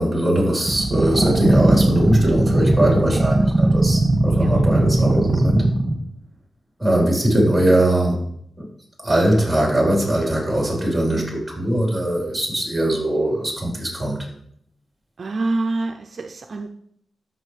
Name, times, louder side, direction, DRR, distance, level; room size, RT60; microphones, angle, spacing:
voice 1, 0.0-5.7 6.8-8.3 9.0-14.3, right 1 dB, 5° right, -3 dB, 3.9 m, -20 dB
sound 1, 0.7-6.0, right 2 dB, 25° right, 1.7 m, -18 dB
voice 2, 4.3-4.7 15.2-16.9, right 2 dB, 55° right, 6 dB, 0.5 m, -27 dB
13.0 x 6.0 x 3.3 m, 0.70 s
wide cardioid pair, 100°, 0 cm